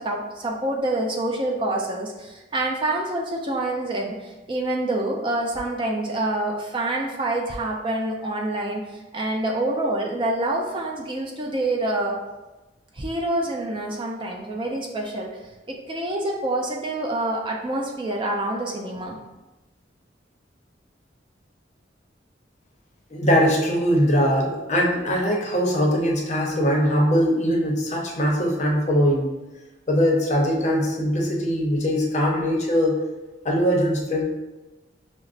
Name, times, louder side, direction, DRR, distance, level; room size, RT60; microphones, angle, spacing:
voice 1, 0.0-12.2 12.9-15.4 15.7-19.2, right 1 dB, 25° right, -1 dB, 0.4 m, -27 dB
voice 2, 23.1-29.3 29.9-33.0 33.4-34.2, equal, 40° left, -1 dB, 0.6 m, -21 dB
6.0 x 2.0 x 2.5 m, 1.1 s
head